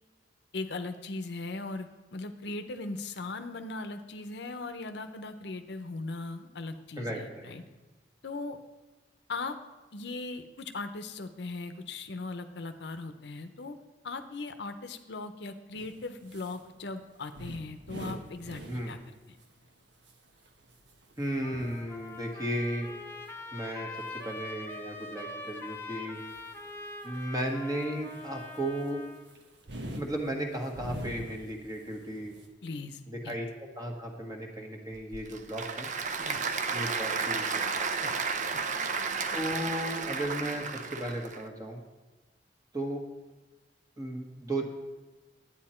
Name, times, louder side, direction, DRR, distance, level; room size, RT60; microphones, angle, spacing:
voice 1, 0.5-7.6 8.2-8.6 9.3-9.6 9.9-13.8 14.0-19.0 32.6-33.0 33.2-33.4 36.2-36.4 38.0-38.2 38.5-38.6, left 3 dB, 70° left, 9 dB, 0.7 m, -39 dB
voice 2, 7.0-7.5 18.7-19.0 21.2-22.9 23.5-23.9 24.2-26.2 27.0-29.0 29.9-32.3 33.1-35.9 36.7-37.7 39.3-41.8 42.7-43.0 44.0-44.7, right 1 dB, 20° right, 2 dB, 1.5 m, -35 dB
sound 1, 15.7-16.6 17.0-19.0 19.4-19.8 20.0-25.8 26.3-26.8 27.1-27.3 27.9-31.6 31.8-32.5, right 1 dB, 75° right, 1.3 m, -43 dB
Trumpet, 21.4-29.2, left 2 dB, 15° left, 0.9 m, -43 dB
Applause / Crowd, 34.9-41.4, right 5 dB, 45° right, 0.6 m, -32 dB
11.0 x 9.0 x 4.4 m, 1.2 s
head